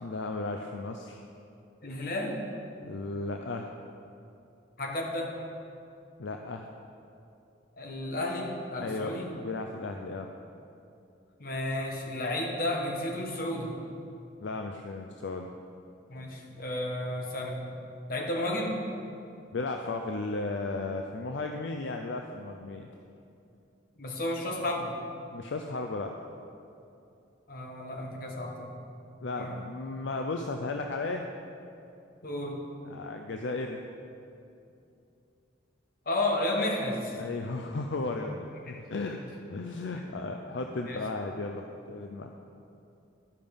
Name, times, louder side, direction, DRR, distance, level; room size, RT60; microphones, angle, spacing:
voice 1, 0.0-1.2 2.8-3.7 6.2-6.7 8.8-10.3 14.4-15.5 19.5-22.9 25.3-26.2 29.2-31.2 32.9-33.8 37.1-39.2 39.5-42.3, left 3 dB, 65° left, 3 dB, 0.5 m, -35 dB
voice 2, 1.8-2.5 4.8-5.4 7.8-9.3 11.4-13.8 16.1-17.6 18.1-18.8 24.0-24.9 27.5-28.7 29.4-29.6 32.2-32.6 36.1-37.2 38.7-38.8 40.9-41.0, left 1 dB, 45° left, 0 dB, 1.2 m, -32 dB
12.5 x 5.2 x 5.3 m, 2.6 s
head